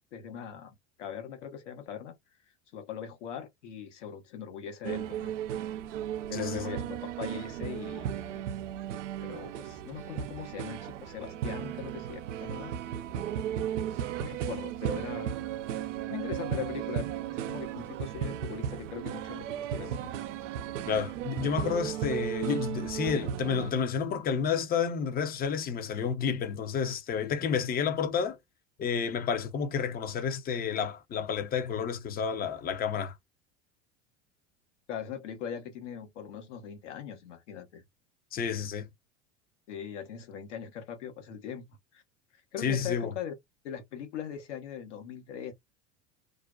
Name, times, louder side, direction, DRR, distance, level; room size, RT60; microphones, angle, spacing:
voice 1, 0.0-2.2 2.7-5.3 6.3-8.5 9.2-12.7 14.2-15.4 16.1-17.1 17.5-20.1 34.9-37.8 39.7-41.6 41.9-42.0 42.5-43.3 43.6-45.5, left 8 dB, 70° left, 1.0 m, -40 dB
sound 1, 4.8-23.7, right 10 dB, 75° right, 0.5 m, -35 dB
voice 2, 6.3-6.7 20.9-28.4 28.8-33.1 38.3-38.9 42.6-43.1, left 7 dB, 25° left, 0.6 m, -30 dB
2.5 x 2.1 x 2.3 m
hypercardioid pair, 80°, 37 cm